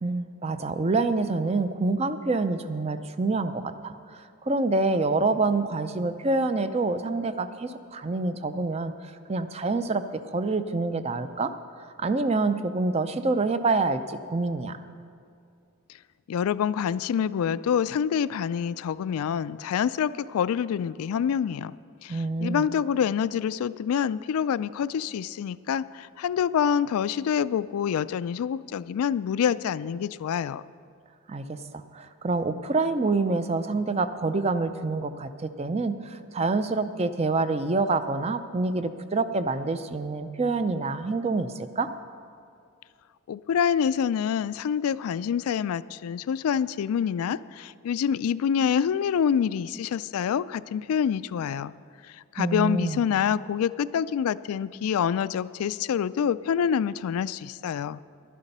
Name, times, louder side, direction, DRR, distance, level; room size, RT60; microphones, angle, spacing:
voice 1, 0.0-8.9 9.3-10.0 10.3-11.5 12.0-14.8 22.1-22.7 31.3-41.9 52.4-53.0, right 3 dB, 30° right, 11 dB, 0.4 m, -27 dB
voice 2, 16.3-21.7 22.0-30.6 43.3-51.7 52.3-58.0, left 8 dB, 75° left, 18 dB, 0.3 m, -26 dB
11.5 x 11.0 x 5.4 m, 2.4 s
head